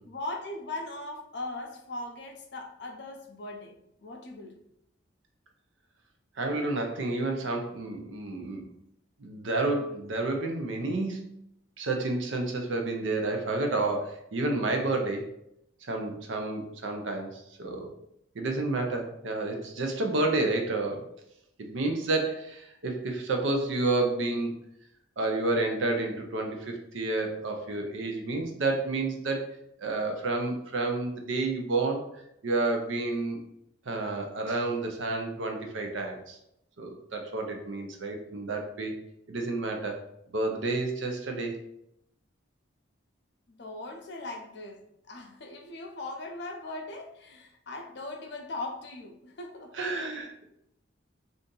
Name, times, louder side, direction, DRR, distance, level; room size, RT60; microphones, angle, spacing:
voice 1, 0.0-4.6 43.5-44.8 45.1-49.7, left 2 dB, 55° left, 2 dB, 0.5 m, -39 dB
voice 2, 6.4-8.7 9.2-11.4 11.8-15.3 15.8-17.9 18.3-21.1 21.6-24.6 25.2-29.5 29.8-32.0 32.4-33.4 33.9-36.4 36.8-39.0 39.3-40.0 40.3-41.6 49.7-50.4, right 2 dB, 70° right, 3 dB, 0.6 m, -30 dB
2.7 x 2.5 x 3.7 m, 0.78 s
head